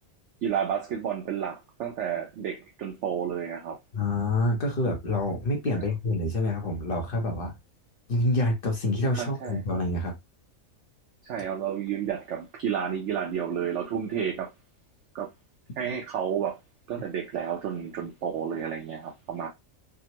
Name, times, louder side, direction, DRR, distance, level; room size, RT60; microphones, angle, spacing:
voice 1, 0.4-3.8 5.7-5.9 9.1-9.6 11.2-14.5 15.1-15.3 15.8-16.6 16.9-19.5, right 8 dB, 65° right, 0.8 m, -31 dB
voice 2, 3.9-7.5 8.1-10.1, left 2 dB, 45° left, 0.9 m, -27 dB
3.4 x 2.1 x 2.8 m
omnidirectional pair, 1.5 m